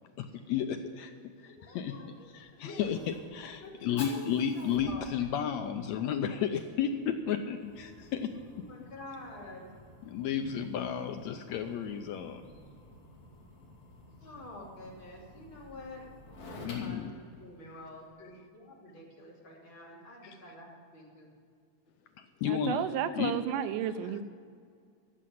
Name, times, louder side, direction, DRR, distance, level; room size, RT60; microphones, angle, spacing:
voice 1, 0.2-1.1 1.4-2.0 2.3-8.3 10.0-12.4 16.6-17.1 20.2-20.4 22.2-22.8 23.2-23.3, left 8 dB, 80° left, 7 dB, 1.7 m, -33 dB
voice 2, 1.5-2.9 3.6-3.7 4.1-4.2 4.5-5.0 8.7-9.7 14.2-16.0 16.4-17.1 17.4-21.3, left 2 dB, 40° left, -4 dB, 3.5 m, -48 dB
Fire, 1.9-18.1, left 2 dB, 60° left, 4.0 m, -52 dB
voice 3, 22.4-24.2, right 9 dB, 90° right, 10 dB, 2.3 m, -32 dB
14.5 x 7.6 x 9.3 m, 2.3 s
omnidirectional pair, 3.7 m